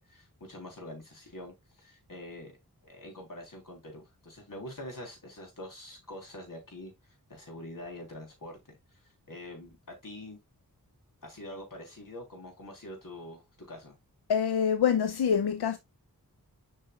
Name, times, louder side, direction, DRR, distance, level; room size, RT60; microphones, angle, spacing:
voice 1, 0.0-2.6 2.8-6.9 7.3-8.8 9.0-10.4 11.2-14.0, left 1 dB, 55° left, 3.4 m, -45 dB
voice 2, 14.3-15.8, left 7 dB, 80° left, 0.6 m, -25 dB
7.6 x 5.5 x 2.3 m
cardioid pair, 40°, 38 cm